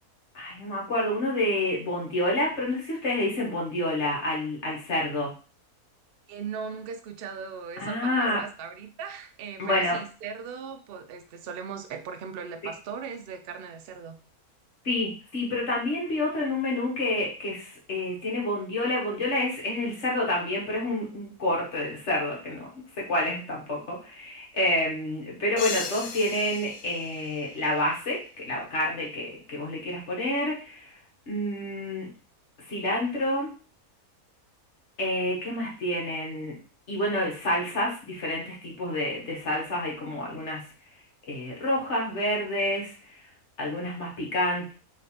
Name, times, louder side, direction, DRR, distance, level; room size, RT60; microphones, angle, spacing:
voice 1, 0.3-5.3 7.8-8.4 9.6-10.0 14.8-22.7 22.9-31.0 31.3-32.1 32.6-33.5 35.0-36.6 36.9-40.6 41.3-43.3 43.6-44.7, left 1 dB, 50° left, -2 dB, 1.5 m, -28 dB
voice 2, 6.3-14.2, right 6 dB, 80° right, 6 dB, 0.5 m, -38 dB
sound 1, 25.6-28.2, left 6 dB, 80° left, 1.1 m, -38 dB
3.2 x 3.2 x 4.2 m, 0.37 s
omnidirectional pair, 1.6 m